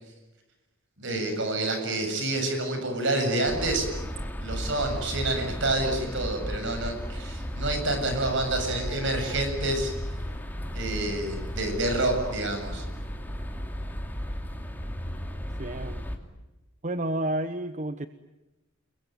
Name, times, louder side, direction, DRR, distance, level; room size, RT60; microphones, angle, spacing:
voice 1, 1.0-3.9 4.4-9.9 10.7-12.8, right 2 dB, 60° right, 6 dB, 7.6 m, -28 dB
sound 1, 3.5-16.2, equal, 10° left, 2.6 m, -34 dB
voice 2, 15.6-16.0 16.8-18.1, right 1 dB, 35° right, 11 dB, 1.0 m, -30 dB
29.0 x 22.0 x 9.3 m, 1.0 s
head